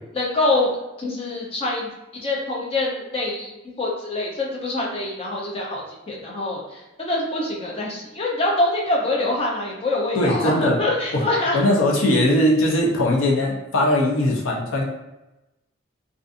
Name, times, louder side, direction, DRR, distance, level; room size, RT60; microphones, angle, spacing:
voice 1, 0.1-0.7 1.0-11.6, left 2 dB, 30° left, -3 dB, 0.5 m, -25 dB
voice 2, 10.1-10.8 11.1-11.2 11.5-14.8, left 1 dB, 90° left, -1 dB, 0.6 m, -20 dB
2.5 x 2.5 x 2.5 m, 0.99 s
head